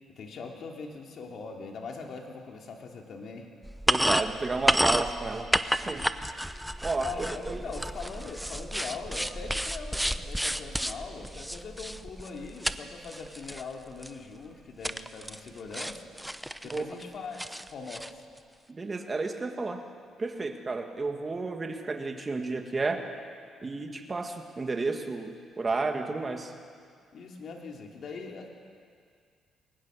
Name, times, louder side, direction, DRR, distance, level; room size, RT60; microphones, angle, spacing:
voice 1, 0.2-3.5 6.6-16.0 16.6-17.4 17.7-18.3 27.1-28.5, left 4 dB, 60° left, 1 dB, 2.9 m, -41 dB
sound 1, 3.6-12.8 13.0-13.6 14.0-14.1 14.8-15.5 15.7-17.0 17.4-18.1, equal, ahead, 0.7 m, -30 dB
voice 2, 3.9-5.5 5.9-6.1 6.8-7.7 16.7-16.9 18.7-19.8 20.2-23.1 23.6-26.5, right 3 dB, 30° right, 4 dB, 2.1 m, -32 dB
22.0 x 19.5 x 6.4 m, 2.1 s
cardioid pair, 90°, 0 cm